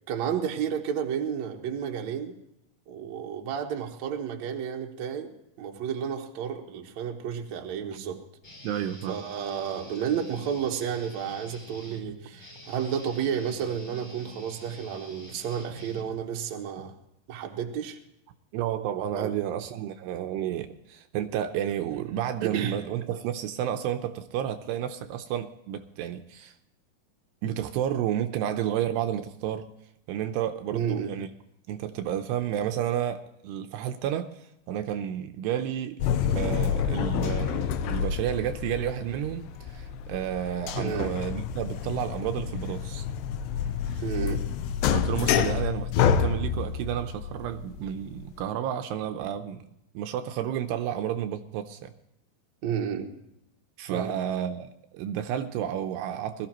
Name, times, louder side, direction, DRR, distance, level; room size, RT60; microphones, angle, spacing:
voice 1, 0.1-2.4 2.9-5.3 5.6-8.2 9.1-16.9 17.3-18.0 19.1-19.3 22.4-22.8 30.7-31.1 40.8-41.1 44.0-44.4 52.6-53.1 53.9-54.1, right 8 dB, 60° right, 2.0 m, -31 dB
Guitar, 8.4-16.5, left 2 dB, 30° left, 3.5 m, -47 dB
voice 2, 8.6-9.2 18.5-26.5 27.4-29.7 30.1-31.3 31.7-36.0 36.3-43.1 43.9-44.0 44.9-49.6 49.9-51.9 53.8-56.5, right 10 dB, 80° right, 2.7 m, -31 dB
sound 1, 36.0-48.4, left 8 dB, 80° left, 2.8 m, -28 dB
21.5 x 14.5 x 3.0 m
omnidirectional pair, 5.0 m